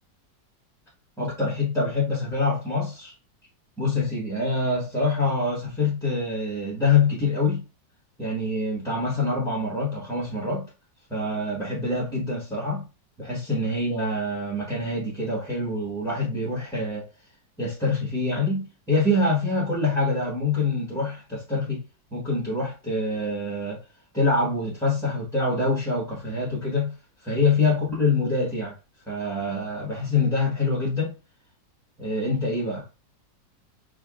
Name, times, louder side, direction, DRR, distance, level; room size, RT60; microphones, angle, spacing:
voice 1, 1.2-3.1 3.8-7.6 8.2-10.7 11.1-12.8 13.2-17.1 17.6-21.8 22.1-23.8 24.1-26.9 27.2-28.7 29.1-31.1 32.0-32.8, left 3 dB, ahead, 1.0 m, -25 dB
4.9 x 2.5 x 2.4 m
omnidirectional pair, 2.0 m